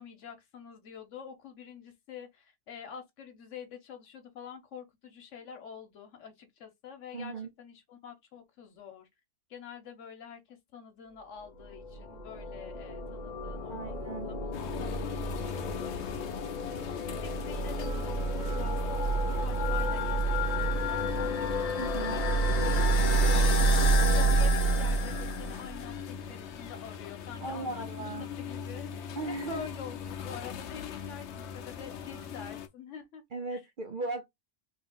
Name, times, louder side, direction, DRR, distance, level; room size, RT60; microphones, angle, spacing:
voice 1, 0.0-9.1 9.5-14.5 14.8-22.2 22.6-33.2 33.5-33.6, left 7 dB, 90° left, 1.2 m, -47 dB
voice 2, 7.1-7.5 13.7-14.3 21.8-22.2 27.4-28.3 29.2-29.7 33.3-34.3, right 3 dB, 55° right, 0.6 m, -37 dB
sound 1, 11.7-25.9, right 2 dB, 45° left, 0.6 m, -28 dB
sound 2, 14.5-32.7, left 7 dB, 70° left, 0.9 m, -41 dB
3.1 x 2.8 x 3.6 m
omnidirectional pair, 1.2 m